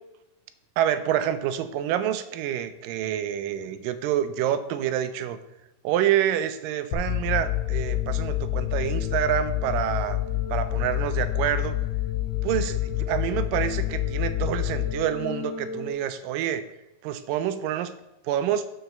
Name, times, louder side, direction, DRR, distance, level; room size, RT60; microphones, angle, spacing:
voice 1, 0.8-5.4 5.8-10.2 10.5-11.8 12.4-12.7 13.1-16.6 17.0-17.9 18.3-18.7, right 10 dB, 90° right, 12 dB, 2.2 m, -27 dB
sound 1, 6.9-15.9, left 13 dB, 85° left, 2.3 m, -28 dB
6.5 x 4.7 x 6.4 m, 0.95 s
omnidirectional pair, 3.8 m